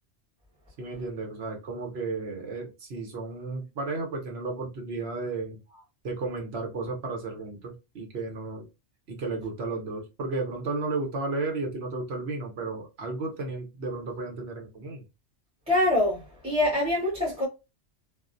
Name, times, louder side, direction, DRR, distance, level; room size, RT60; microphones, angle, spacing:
voice 1, 0.8-5.6 6.0-8.7 9.1-15.0, right 3 dB, 65° right, 1.0 m, -33 dB
voice 2, 15.7-17.5, left 1 dB, 5° right, 0.8 m, -24 dB
2.5 x 2.1 x 2.4 m
omnidirectional pair, 1.2 m